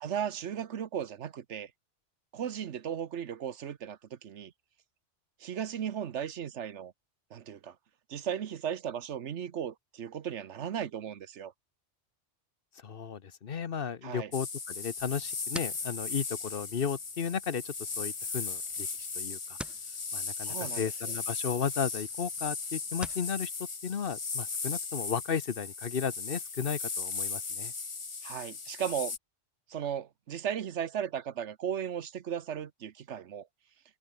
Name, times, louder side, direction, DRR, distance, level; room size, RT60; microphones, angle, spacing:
voice 1, 0.0-1.7 2.3-4.5 5.4-6.9 7.3-7.7 8.1-11.5 14.0-14.3 20.4-21.1 28.2-29.2 29.7-33.5, right 8 dB, 75° right, 1.2 m, -36 dB
voice 2, 12.8-19.6 20.1-23.5 23.8-27.7, left 7 dB, 55° left, 1.1 m, -34 dB
sound 1, 14.3-29.2, left 4 dB, 30° left, 0.9 m, -37 dB
sound 2, 15.0-23.3, equal, ahead, 2.0 m, -49 dB
omnidirectional pair, 1.2 m